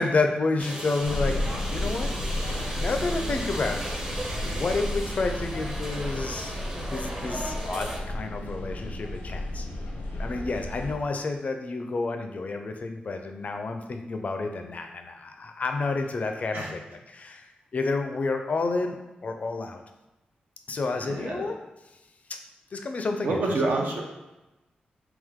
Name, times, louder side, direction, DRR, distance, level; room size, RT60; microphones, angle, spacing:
voice 1, 0.0-1.4 1.7-2.1 2.4-3.9 4.4-9.7 10.2-19.0 19.2-19.8 20.7-21.5 22.3-22.4 22.7-23.8, left 3 dB, 50° left, 5 dB, 0.5 m, -30 dB
sound 1, 0.6-8.0, right 1 dB, 20° right, 0.7 m, -36 dB
sound 2, 1.0-10.9, left 1 dB, 90° left, 0.7 m, -32 dB
voice 2, 21.0-21.5 23.2-24.0, right 2 dB, 70° right, 0 dB, 0.7 m, -27 dB
3.5 x 2.9 x 3.6 m, 1.0 s
wide cardioid pair, 95°, 3 cm